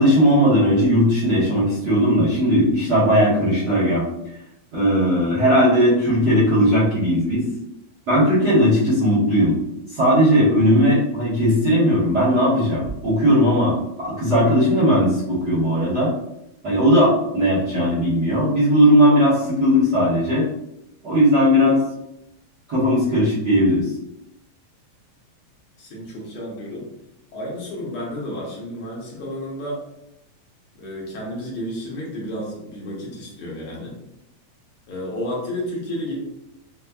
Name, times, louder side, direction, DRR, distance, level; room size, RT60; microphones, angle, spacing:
voice 1, 0.0-4.1 4.7-7.4 8.1-9.5 9.9-16.1 16.6-20.5 21.0-21.8 22.7-23.8, equal, 55° right, -11 dB, 1.2 m, -17 dB
voice 2, 25.8-26.9 27.3-29.8 30.7-34.0 34.9-36.1, left 1 dB, 65° left, -4 dB, 1.5 m, -31 dB
5.0 x 2.2 x 2.2 m, 0.83 s
omnidirectional pair, 3.4 m